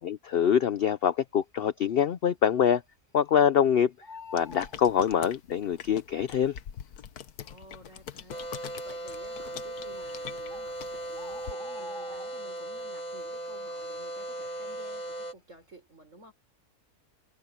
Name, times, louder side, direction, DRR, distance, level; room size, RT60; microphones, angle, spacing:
voice 1, 0.0-2.8 3.1-3.9 4.3-6.5, left 8 dB, 65° left, 0.6 m, -24 dB
Bird, 1.2-1.7 2.0-2.1 2.4-3.6 3.8-5.7 6.5-6.6 7.2-7.3 7.5-7.7 8.3-8.8 9.7-9.8 10.2-10.3 10.5-12.8 13.1-13.4 13.8-15.1 15.5-15.7, left 2 dB, 35° right, 6.2 m, -48 dB
sound 1, 4.3-11.5, left 9 dB, 85° left, 1.5 m, -44 dB
voice 2, 7.4-8.6 8.8-16.3, right 1 dB, 55° right, 6.3 m, -52 dB
sound 2, 8.3-15.3, right 1 dB, 30° left, 1.5 m, -38 dB
omnidirectional pair, 1.6 m